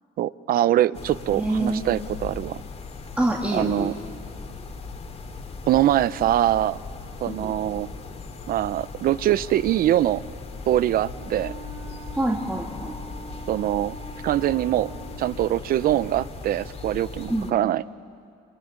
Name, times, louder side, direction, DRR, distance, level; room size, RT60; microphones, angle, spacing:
voice 1, 0.2-2.6 3.5-3.9 5.7-6.8 7.2-7.9 8.5-10.2 10.7-11.5 13.5-14.0 14.2-14.9 15.2-17.8, right 13 dB, 60° right, 18 dB, 0.6 m, -23 dB
sound 1, 0.9-17.5, left 4 dB, 35° left, 2.6 m, -38 dB
voice 2, 1.3-1.8 3.2-3.9 7.3-7.5 12.2-12.9 17.3-17.5, right 1 dB, 5° right, 0 dB, 2.2 m, -26 dB
Wind instrument woodwind instrument, 11.1-15.4, right 1 dB, 90° right, 5.9 m, -43 dB
26.0 x 23.0 x 8.9 m, 2.4 s
cardioid pair, 110°, 17 cm